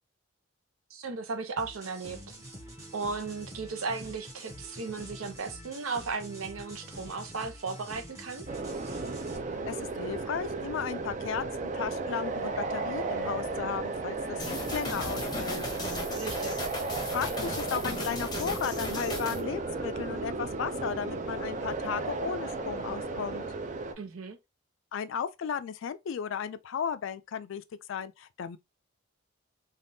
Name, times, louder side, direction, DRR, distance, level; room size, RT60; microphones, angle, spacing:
voice 1, 0.9-2.2 2.9-8.5 16.1-16.6 24.0-24.4, right 4 dB, 75° right, 0.6 m, -36 dB
sound 1, 1.6-9.4, equal, 15° right, 0.8 m, -46 dB
sound 2, 8.5-23.9, right 3 dB, 35° right, 0.4 m, -34 dB
voice 2, 9.7-15.6 17.1-23.4 24.9-27.6 27.9-28.6, left 7 dB, 65° left, 0.3 m, -35 dB
sound 3, 14.4-19.4, left 2 dB, 20° left, 0.7 m, -36 dB
3.4 x 2.3 x 2.6 m
head